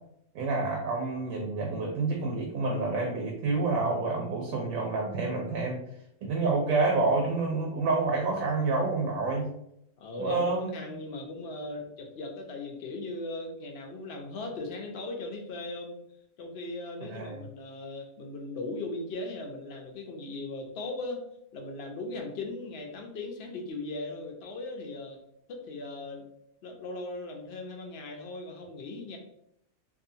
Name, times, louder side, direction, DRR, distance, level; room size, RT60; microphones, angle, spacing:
voice 1, 0.3-5.8 6.2-9.5 10.2-10.7 17.1-17.4, right 3 dB, 85° right, 0 dB, 1.0 m, -28 dB
voice 2, 10.0-16.0 16.4-21.2 21.5-25.2 25.5-26.3 26.6-29.2, left 2 dB, 60° left, 2 dB, 0.7 m, -38 dB
2.7 x 2.3 x 2.6 m, 0.76 s
omnidirectional pair, 1.4 m